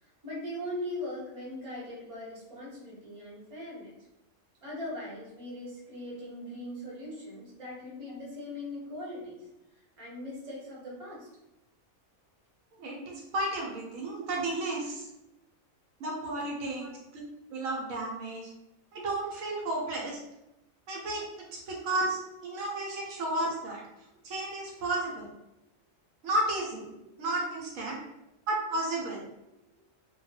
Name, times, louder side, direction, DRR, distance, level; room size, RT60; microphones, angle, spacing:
voice 1, 0.0-3.9 4.6-9.5 10.0-11.3 16.8-17.0 23.3-23.4, left 1 dB, 30° right, -6 dB, 0.8 m, -40 dB
voice 2, 12.8-15.1 16.0-16.9 17.1-17.2 17.5-18.5 18.9-20.2 20.9-21.2 21.7-23.8 24.2-25.2 26.2-26.9 27.2-28.0 28.5-29.2, right 2 dB, 80° right, -2 dB, 1.0 m, -32 dB
2.2 x 2.2 x 2.7 m, 0.90 s
omnidirectional pair, 1.4 m